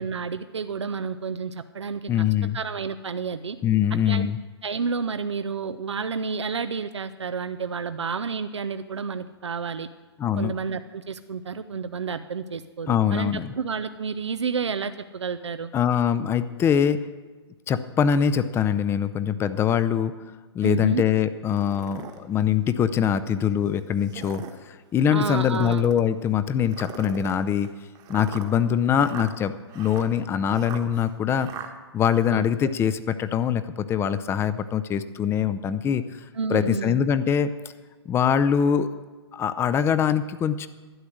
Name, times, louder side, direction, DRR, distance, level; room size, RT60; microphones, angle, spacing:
voice 1, 0.0-2.1 2.5-3.6 4.1-4.3 4.6-9.9 10.4-15.7 20.6-21.0 25.1-25.8 32.3-32.7 36.3-37.0, right 5 dB, 80° right, 10 dB, 0.5 m, -30 dB
voice 2, 2.1-2.6 3.6-4.4 10.2-10.5 12.9-13.5 15.7-17.0 17.7-20.1 20.5-27.7 28.1-31.5 31.9-36.0 36.5-37.5 38.1-38.9 39.3-40.7, left 8 dB, 15° left, 13 dB, 0.5 m, -23 dB
sound 1, 21.5-22.2 22.8-22.9 23.9-24.6 25.3-26.1 26.7-31.7, right 8 dB, 30° right, 1.2 m, -40 dB
12.0 x 9.7 x 6.3 m, 1.3 s
figure-of-eight pair, 120°, 14 cm